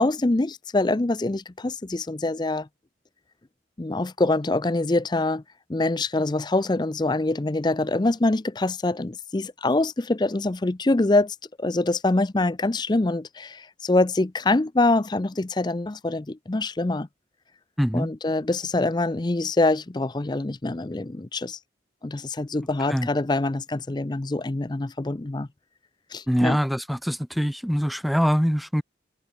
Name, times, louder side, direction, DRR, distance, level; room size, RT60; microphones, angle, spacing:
voice 1, 0.0-2.7 3.8-5.4 5.7-17.1 17.9-21.6 22.0-25.5 26.1-26.6, left 2 dB, 25° left, 0.5 m, -24 dB
voice 2, 17.8-18.1 22.9-23.1 26.3-28.8, equal, ahead, 1.7 m, -23 dB
head